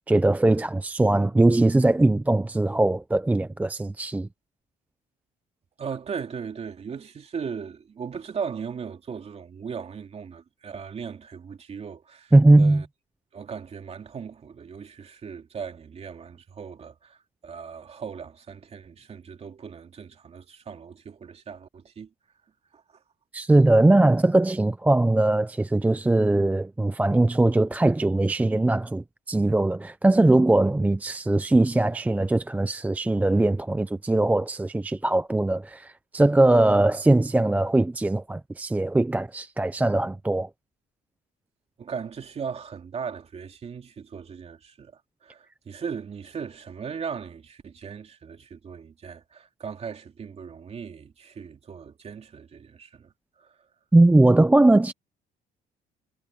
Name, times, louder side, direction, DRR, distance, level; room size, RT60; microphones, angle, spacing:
voice 1, 0.1-4.3 12.3-12.8 23.3-40.5 53.9-54.9, right 2 dB, 10° right, 0.5 m, -20 dB
voice 2, 5.8-12.9 13.3-22.1 22.7-23.0 41.8-53.7, right 6 dB, 40° right, 2.7 m, -38 dB
cardioid pair, 110°, 17 cm